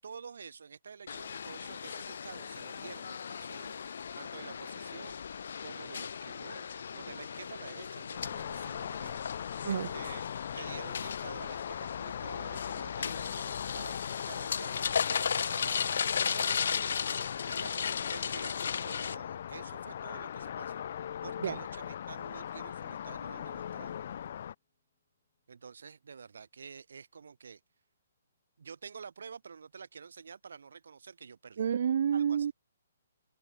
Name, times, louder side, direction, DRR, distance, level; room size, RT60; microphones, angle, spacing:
voice 1, 0.0-3.8 4.2-5.2 5.6-10.3 10.5-20.9 21.2-24.0 25.5-27.6 28.6-31.6 32.1-32.5, right 6 dB, 70° right, 7.2 m, -49 dB
sound 1, 1.1-19.1, left 7 dB, 55° left, 0.9 m, -36 dB
sound 2, 8.1-24.5, left 9 dB, 40° left, 0.3 m, -40 dB
Piano, 15.5-23.6, left 30 dB, 20° left, 3.2 m, -64 dB
voice 2, 31.6-32.5, right 8 dB, 45° right, 0.4 m, -29 dB
hypercardioid pair, 175°, 0 cm